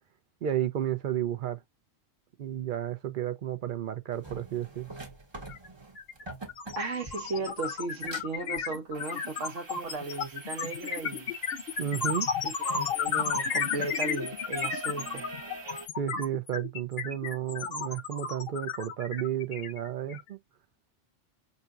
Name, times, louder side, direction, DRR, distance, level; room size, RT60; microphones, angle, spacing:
voice 1, 0.4-1.6 2.4-4.9 11.8-12.3 16.0-20.4, right 10 dB, 55° right, 0.6 m, -32 dB
sound 1, 4.1-15.9, right 3 dB, 25° right, 0.9 m, -45 dB
sound 2, 5.5-5.7 6.0-20.3, left 6 dB, 55° left, 0.9 m, -33 dB
voice 2, 6.8-11.3 12.4-15.3, right 3 dB, 75° right, 1.2 m, -36 dB
5.6 x 2.8 x 2.4 m
omnidirectional pair, 1.3 m